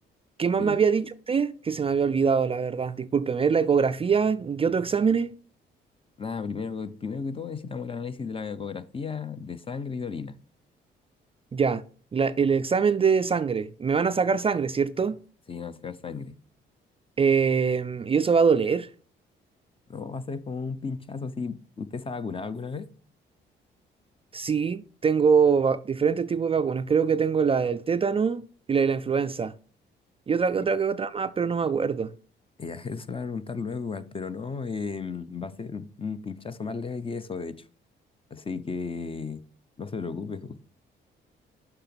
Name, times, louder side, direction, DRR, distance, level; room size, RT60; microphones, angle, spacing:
voice 1, 0.4-5.3 11.5-11.8 12.1-15.2 17.2-18.9 24.3-28.4 28.7-29.5 30.3-32.1, right 6 dB, 30° right, 0.4 m, -23 dB
voice 2, 6.2-10.4 15.5-16.4 19.9-22.9 32.6-37.6 38.3-39.4 39.8-40.7, left 5 dB, 25° left, 0.7 m, -34 dB
6.6 x 5.9 x 6.0 m
cardioid pair, 90°, 20 cm